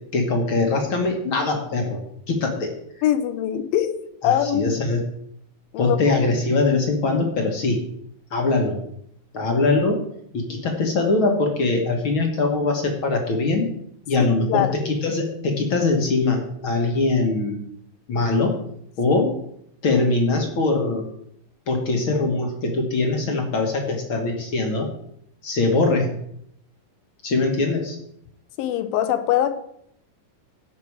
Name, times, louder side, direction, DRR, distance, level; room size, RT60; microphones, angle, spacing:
voice 1, 0.1-2.0 2.3-2.8 4.2-5.0 5.8-7.8 8.3-8.8 9.3-10.0 10.3-13.7 14.1-17.6 18.1-18.6 19.0-19.3 19.8-21.1 21.7-24.9 25.4-26.1 27.2-28.0, left 3 dB, 55° left, 2 dB, 1.6 m, -22 dB
voice 2, 3.0-3.9 4.2-4.7 5.7-6.2 14.2-14.7 28.6-29.5, left 11 dB, 85° left, 10 dB, 2.7 m, -22 dB
16.0 x 6.1 x 4.8 m, 0.72 s
omnidirectional pair, 4.1 m